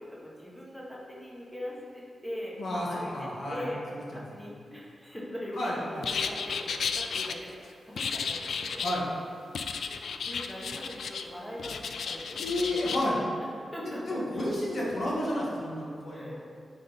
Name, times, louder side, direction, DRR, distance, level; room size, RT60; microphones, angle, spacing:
voice 1, 0.0-2.5 2.9-3.8 4.1-9.0 9.8-12.9 13.7-14.5 16.1-16.4, equal, 5° left, -5 dB, 1.4 m, -41 dB
voice 2, 2.6-4.0 5.6-6.0 8.8-9.0 12.3-13.2 13.8-16.3, left 1 dB, 55° left, -5 dB, 1.7 m, -31 dB
sound 1, 6.0-7.3 8.0-9.0 9.5-11.3 11.6-13.0, left 6 dB, 80° left, 0.3 m, -33 dB
9.5 x 4.2 x 4.1 m, 2.2 s
wide cardioid pair, 145°, 0 cm